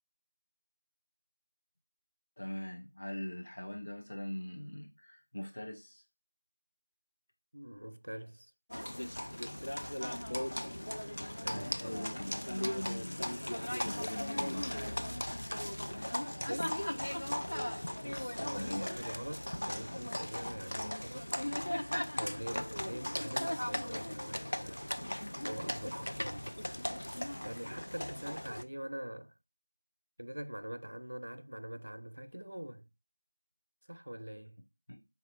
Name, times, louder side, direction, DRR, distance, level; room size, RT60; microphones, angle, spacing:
voice 1, 2.4-6.0 11.4-13.3 13.8-15.2 18.5-18.8 34.9-35.0, left 1 dB, 60° left, 1.4 m, -42 dB
voice 2, 7.5-8.5 11.2-12.1 16.3-17.0 18.0-21.3 22.2-24.9 25.4-26.6 27.4-29.3 30.2-32.9 33.9-34.6, right 1 dB, 85° right, 0.5 m, -44 dB
Livestock farm animals working animals, 8.7-28.6, left 1 dB, 80° left, 0.5 m, -37 dB
4.2 x 3.5 x 2.3 m
figure-of-eight pair, 170°, 0 cm